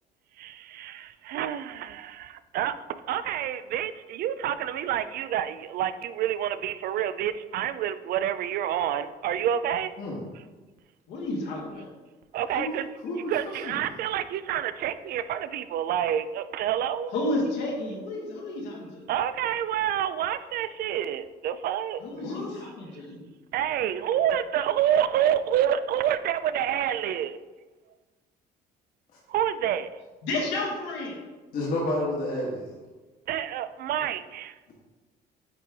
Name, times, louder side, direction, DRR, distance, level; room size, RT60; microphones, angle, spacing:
voice 1, 0.4-2.7 3.1-9.9 12.3-12.9 13.3-17.1 19.1-22.0 23.5-27.4 29.3-29.9 33.3-34.5, right 10 dB, 65° right, 13 dB, 0.4 m, -28 dB
voice 2, 11.1-11.9 17.1-19.1 22.0-23.2 30.2-31.2, left 2 dB, 85° left, -2 dB, 1.5 m, -31 dB
voice 3, 22.2-22.6 31.5-32.7, left 1 dB, 60° left, -5 dB, 1.3 m, -30 dB
8.7 x 3.2 x 3.5 m, 1.3 s
cardioid pair, 110°, 17 cm